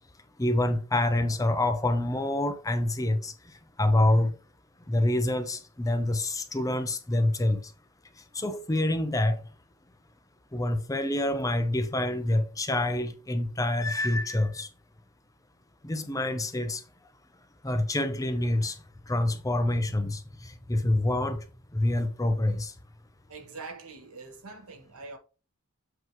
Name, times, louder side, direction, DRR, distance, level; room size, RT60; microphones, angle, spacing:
voice 1, 0.4-4.4 4.9-7.7 8.2-9.4 10.5-14.7 15.8-16.8 17.6-22.7, left 1 dB, 15° left, 0.7 m, -27 dB
voice 2, 23.3-25.2, right 3 dB, 80° right, 1.6 m, -43 dB
7.9 x 3.1 x 4.5 m
head